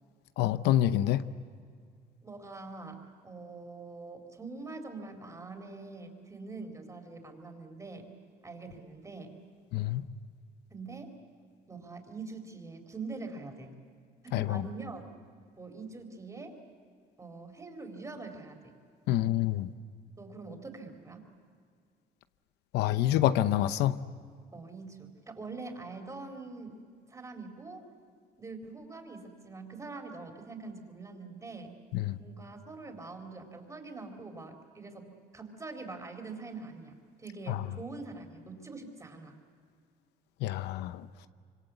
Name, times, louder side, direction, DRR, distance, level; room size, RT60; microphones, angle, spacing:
voice 1, 0.4-1.3 9.7-10.0 14.3-14.6 19.1-19.7 22.7-24.0 31.9-32.2 37.5-37.6 40.4-41.1, left 13 dB, 85° left, 0.8 m, -27 dB
voice 2, 2.2-8.1 8.4-9.3 10.7-11.1 11.7-13.7 14.2-15.1 15.6-16.6 17.2-18.7 20.2-21.3 24.5-26.8 27.1-27.8 28.4-31.7 32.2-39.3, right 3 dB, 20° right, 4.3 m, -44 dB
26.0 x 25.0 x 8.3 m
cardioid pair, 110°, 17 cm